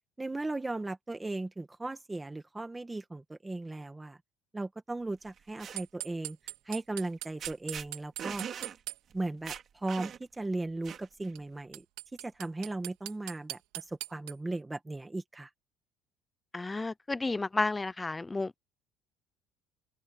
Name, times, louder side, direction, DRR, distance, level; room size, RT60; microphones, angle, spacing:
voice 1, 0.2-4.2 4.5-6.4 6.7-8.5 9.1-9.5 9.8-11.8 12.2-15.5, right 2 dB, 10° right, 1.9 m, -37 dB
sound 1, 5.3-5.8 7.0-7.1 7.4-7.9 8.2-8.8 9.1-9.2 9.5-10.4 10.8-11.3, right 8 dB, 35° right, 3.2 m, -41 dB
sound 2, 5.8-9.0 11.3-11.4 11.7-14.3, right 20 dB, 90° right, 3.0 m, -40 dB
voice 2, 16.5-18.6, left 3 dB, 10° left, 0.6 m, -32 dB
open air
cardioid pair, 160°, 0 cm